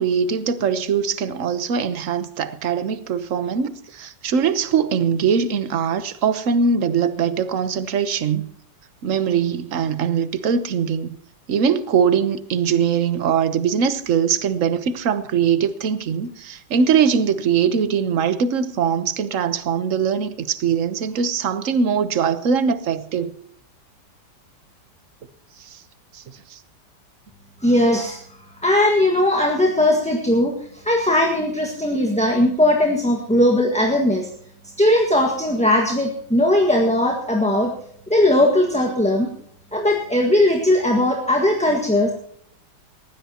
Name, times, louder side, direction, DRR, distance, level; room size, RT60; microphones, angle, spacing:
voice 1, 0.0-8.5 9.0-11.2 11.5-23.4 25.6-25.8 26.1-26.2 26.5-26.6, right 7 dB, 50° right, 1.2 m, -21 dB
voice 2, 27.6-28.2 28.6-34.3 34.8-37.7 38.1-39.3 39.7-42.1, left 1 dB, 5° left, 1.4 m, -18 dB
20.0 x 16.0 x 2.9 m
omnidirectional pair, 2.0 m